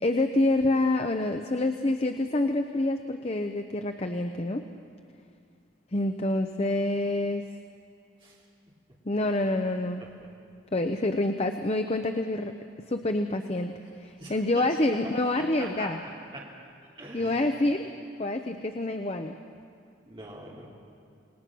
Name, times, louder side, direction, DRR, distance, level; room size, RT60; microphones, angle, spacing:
voice 1, 0.0-4.6 5.9-7.4 9.1-10.1 10.7-12.5 12.9-13.7 14.0-16.0 17.1-17.9 18.2-19.4, left 2 dB, 35° left, 6 dB, 0.7 m, -27 dB
voice 2, 14.2-14.6 15.0-15.9 16.3-16.4 16.8-17.5 20.0-20.7, right 2 dB, 25° right, -5 dB, 3.0 m, -43 dB
28.0 x 19.5 x 6.1 m, 2.4 s
head